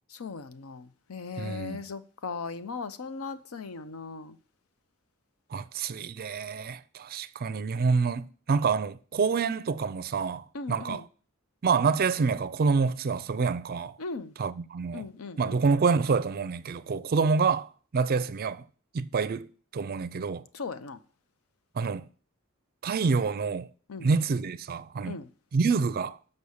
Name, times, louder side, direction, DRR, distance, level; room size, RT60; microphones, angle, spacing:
voice 1, 0.1-4.4 10.5-11.0 14.0-14.3 14.9-15.6 20.5-21.0 23.9-24.1 25.0-25.3, left 4 dB, 80° left, 0.6 m, -38 dB
voice 2, 1.4-1.8 5.5-11.1 11.6-14.0 14.4-15.1 15.4-18.6 18.9-20.4 21.8-22.0 22.8-23.7 24.0-25.2 25.5-26.2, right 5 dB, 45° right, 0.4 m, -27 dB
7.0 x 5.4 x 6.4 m
head